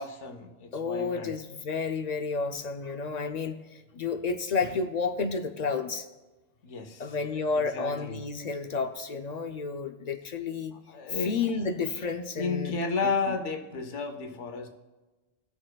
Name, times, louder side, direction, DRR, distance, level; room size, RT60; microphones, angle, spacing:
voice 1, 0.0-1.4 6.6-7.2 7.5-8.2 10.7-11.4 12.3-14.7, left 4 dB, 85° left, 5 dB, 1.2 m, -33 dB
voice 2, 0.7-6.1 7.0-10.8 11.2-12.8, left 4 dB, 50° left, 6 dB, 0.5 m, -31 dB
18.0 x 6.5 x 2.3 m, 1.2 s
omnidirectional pair, 1.2 m